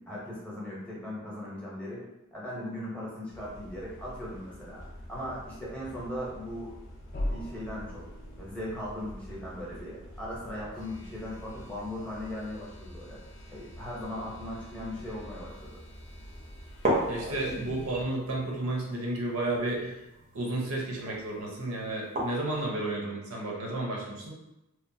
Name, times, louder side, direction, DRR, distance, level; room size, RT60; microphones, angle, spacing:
voice 1, 0.0-2.0 2.3-4.8 5.1-6.7 7.3-8.1 8.4-13.2 13.5-15.8, left 1 dB, 5° left, -7 dB, 0.6 m, -38 dB
sound 1, 3.3-18.0, equal, 85° left, 0.6 m, -47 dB
sound 2, 7.1-11.8, left 1 dB, 40° left, 0.3 m, -40 dB
sound 3, 15.5-15.6 16.1-16.2 16.7-22.6, right 1 dB, 35° right, 0.5 m, -35 dB
voice 2, 17.1-20.0 20.3-24.3, right 2 dB, 75° right, -2 dB, 0.7 m, -32 dB
2.9 x 2.0 x 2.6 m, 0.93 s
head